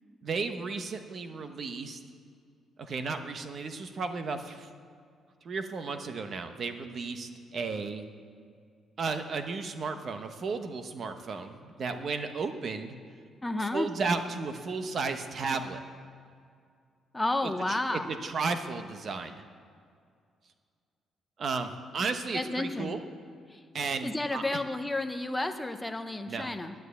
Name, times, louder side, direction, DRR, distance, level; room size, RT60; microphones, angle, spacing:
voice 1, 0.2-2.0 2.8-4.7 5.4-8.0 9.0-12.9 13.6-15.8 17.4-19.4 21.4-23.0 23.7-24.4 26.3-26.5, right 4 dB, 35° right, 7 dB, 0.9 m, -34 dB
voice 2, 13.4-13.9 17.1-18.1 22.3-23.0 23.5-23.6 24.0-26.7, left 2 dB, 10° left, 7 dB, 0.7 m, -31 dB
10.5 x 10.0 x 8.3 m, 2.2 s
cardioid pair, 175°, 0 cm